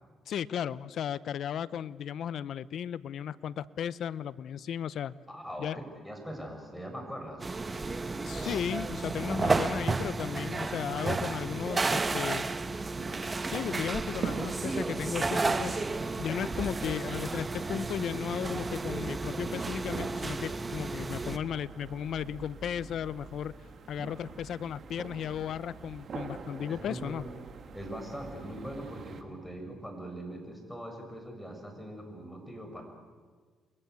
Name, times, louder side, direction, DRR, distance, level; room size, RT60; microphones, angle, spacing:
voice 1, 0.3-5.1 5.6-5.8 8.2-12.5 13.5-15.8 16.2-23.5 23.9-27.3, left 9 dB, 70° left, 17 dB, 0.8 m, -35 dB
voice 2, 5.3-7.5 24.1-24.3 26.7-27.2 27.7-32.8, right 1 dB, 5° left, 3 dB, 7.0 m, -41 dB
sound 1, 7.4-21.4, right 3 dB, 25° right, 1.2 m, -32 dB
sound 2, 12.9-29.2, right 5 dB, 55° right, 2.5 m, -45 dB
29.5 x 22.5 x 8.3 m, 1.5 s
cardioid pair, 90°, 0 cm